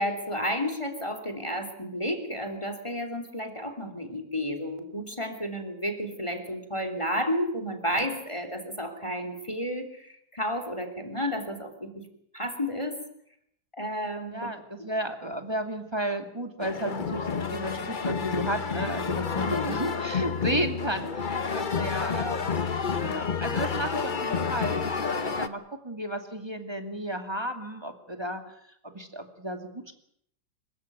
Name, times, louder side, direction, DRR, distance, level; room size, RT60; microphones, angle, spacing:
voice 1, 0.0-12.1 12.3-13.0 13.7-14.4 19.4-19.9, equal, 15° left, 7 dB, 3.0 m, -32 dB
voice 2, 14.3-22.6 22.9-28.5 28.8-29.9, right 1 dB, 15° right, 6 dB, 2.6 m, -33 dB
sound 1, 16.6-25.5, left 5 dB, 35° left, 0.9 m, -29 dB
26.5 x 15.5 x 9.4 m, 0.72 s
omnidirectional pair, 2.1 m